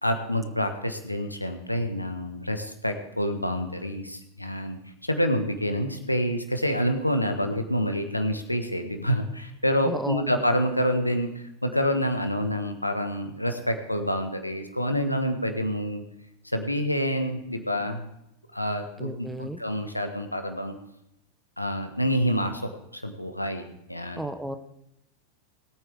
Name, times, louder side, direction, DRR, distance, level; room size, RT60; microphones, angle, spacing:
voice 1, 0.0-4.8 5.0-16.0 16.4-18.0 18.5-20.8 21.6-23.6 23.9-24.2, equal, 85° left, 6 dB, 1.5 m, -27 dB
voice 2, 9.9-10.4 19.0-19.6 24.2-24.6, right 1 dB, 5° right, 9 dB, 1.0 m, -33 dB
20.5 x 8.9 x 3.6 m, 0.83 s
figure-of-eight pair, 90°, 0 cm